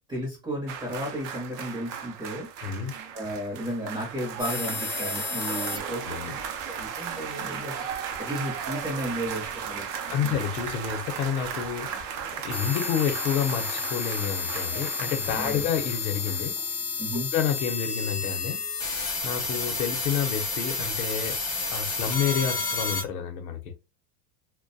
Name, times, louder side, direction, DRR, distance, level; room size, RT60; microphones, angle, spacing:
voice 1, 0.1-2.5 3.1-6.4 6.7-10.4 11.9-12.0 15.3-15.6 17.0-17.3, equal, 10° right, 0.6 m, -34 dB
sound 1, 0.7-17.0 17.2-17.4, right 8 dB, 55° right, 0.5 m, -36 dB
voice 2, 2.6-3.0 5.4-5.5 5.7-6.3 10.1-12.2 12.4-16.6 17.3-18.6 19.0-23.7, left 8 dB, 65° left, 0.8 m, -29 dB
sound 2, 4.4-23.0, left 4 dB, 30° left, 0.6 m, -32 dB
2.3 x 2.2 x 2.5 m
supercardioid pair, 160°, 47 cm